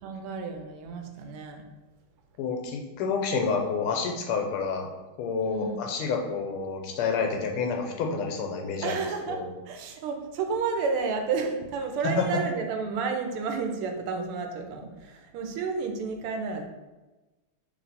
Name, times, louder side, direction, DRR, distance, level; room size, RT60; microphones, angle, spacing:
voice 1, 0.0-1.6 5.4-5.8 8.8-16.6, right 5 dB, 80° right, 4 dB, 1.5 m, -31 dB
voice 2, 2.4-4.9 5.2-9.0 9.3-9.5 12.2-12.3, left 5 dB, 85° left, 3 dB, 1.5 m, -29 dB
3.4 x 3.0 x 4.0 m, 1.1 s
omnidirectional pair, 2.4 m